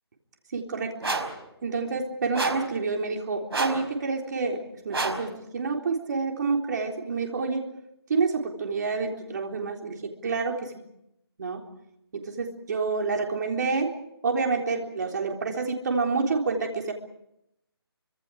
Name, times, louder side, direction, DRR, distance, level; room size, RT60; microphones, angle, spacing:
voice 1, 0.5-1.0 1.6-7.6 8.1-10.7 11.4-11.6 12.1-13.9 14.2-16.9, right 4 dB, 45° right, 2 dB, 3.9 m, -28 dB
sound 1, 1.0-1.4 2.3-2.7 3.5-3.9 4.9-5.3, right 3 dB, 75° right, 5.0 m, -29 dB
29.5 x 25.5 x 5.0 m, 0.82 s
figure-of-eight pair, 160°, 13 cm